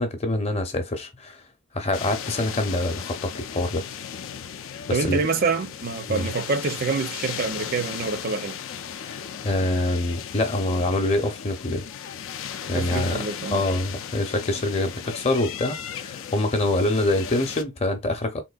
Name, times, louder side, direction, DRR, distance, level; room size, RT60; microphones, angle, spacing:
voice 1, 0.0-1.4 1.7-3.9 4.9-5.3 6.1-6.3 9.0-9.2 9.4-11.8 12.7-13.2 13.5-18.4, left 2 dB, 30° left, 0.7 m, -25 dB
sound 1, 1.9-17.6, left 8 dB, 85° left, 0.4 m, -36 dB
voice 2, 4.9-8.6 12.7-13.7, right 4 dB, 50° right, 0.5 m, -26 dB
3.7 x 2.6 x 2.3 m
head